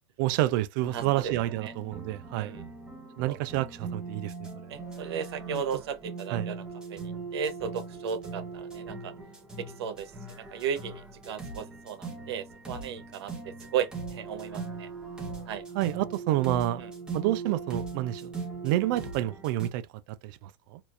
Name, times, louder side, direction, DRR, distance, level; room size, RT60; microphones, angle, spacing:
voice 1, 0.2-2.5 3.2-4.5 5.5-5.6 6.3-6.5 15.7-16.8 17.1-18.3 18.6-20.8, right 15 dB, 55° right, 0.5 m, -29 dB
sound 1, 0.8-19.7, right 4 dB, 5° right, 1.0 m, -40 dB
voice 2, 0.9-1.3 1.6-1.7 2.4-2.6 3.3-3.4 4.7-6.6 6.9-9.1 9.6-13.3 13.7-14.9 15.5-15.6 16.8-16.9, right 7 dB, 85° right, 1.0 m, -35 dB
4.4 x 2.6 x 2.5 m
supercardioid pair, 150°, 13 cm